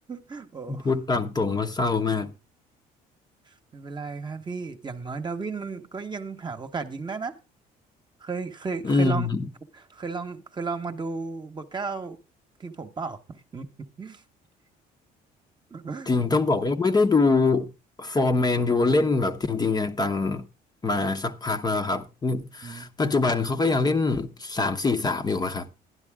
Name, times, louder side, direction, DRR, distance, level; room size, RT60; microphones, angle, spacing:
voice 1, 0.0-0.9 3.5-7.3 8.2-9.3 9.7-12.2 12.6-14.2 15.7-16.1 22.6-22.9, right 4 dB, 25° right, 1.2 m, -34 dB
voice 2, 0.7-2.3 8.8-9.5 16.1-17.7 18.0-20.5 20.8-25.7, left 3 dB, 25° left, 1.0 m, -24 dB
11.5 x 11.0 x 3.6 m
cardioid pair, 110°, 17 cm